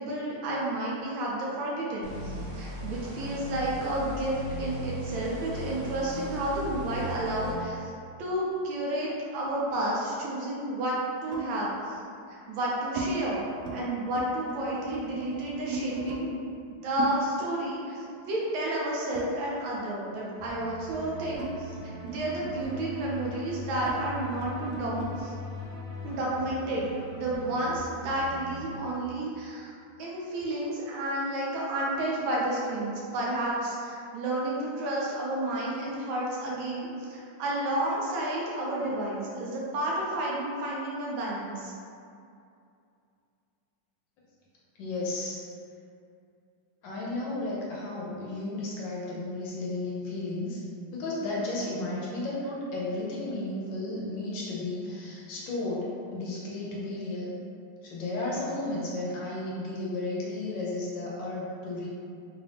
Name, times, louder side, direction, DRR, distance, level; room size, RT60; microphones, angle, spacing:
voice 1, 0.0-7.9 8.2-12.0 12.3-13.4 13.7-25.3 26.0-26.9 27.2-29.7 30.0-41.7, right 1 dB, 75° right, -4 dB, 1.4 m, -31 dB
sound 1, 2.0-7.5, equal, 60° right, 1.3 m, -37 dB
sound 2, 8.4-10.0 11.3-11.6 12.3-13.1 13.5-13.8 14.1-16.2 17.0-19.9 20.2-25.1, right 2 dB, 90° right, 0.8 m, -38 dB
sound 3, 20.4-28.8, left 1 dB, 5° left, 0.8 m, -41 dB
voice 2, 44.8-45.4 46.8-50.6 50.9-57.3 57.8-61.9, left 2 dB, 75° left, -5 dB, 1.3 m, -33 dB
3.7 x 2.5 x 3.3 m, 2.4 s
omnidirectional pair, 2.3 m